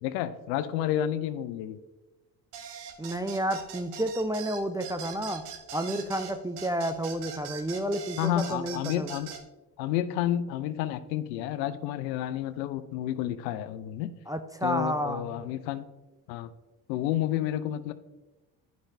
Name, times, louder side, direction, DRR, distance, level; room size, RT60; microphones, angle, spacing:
voice 1, 0.0-1.8 8.2-9.3 9.8-14.1 14.6-15.8 16.3-16.5 16.9-17.9, left 12 dB, 85° left, 13 dB, 0.6 m, -30 dB
sound 1, 2.5-9.4, right 7 dB, 75° right, 0.9 m, -42 dB
voice 2, 3.0-5.4 5.7-9.1 14.3-15.4, right 1 dB, 10° right, 7 dB, 0.3 m, -31 dB
9.8 x 5.1 x 2.7 m, 1.1 s
hypercardioid pair, 55°, 50 cm